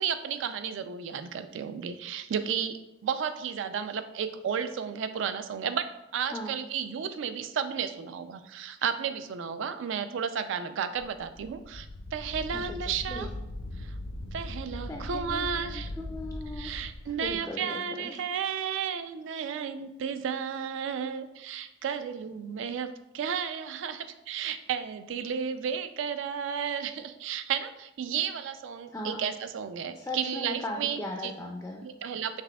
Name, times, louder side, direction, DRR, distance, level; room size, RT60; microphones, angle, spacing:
voice 1, 0.0-13.3 13.8-14.0 14.3-15.9 16.5-31.3 31.8-32.4, right 7 dB, 65° right, 11 dB, 0.3 m, -33 dB
Wind, 11.0-17.4, left 1 dB, 75° left, 0.5 m, -39 dB
voice 2, 14.9-16.7 17.2-18.2 28.9-29.2 30.0-31.8, left 1 dB, 15° left, 1 dB, 0.3 m, -38 dB
5.8 x 3.4 x 2.2 m, 0.91 s
head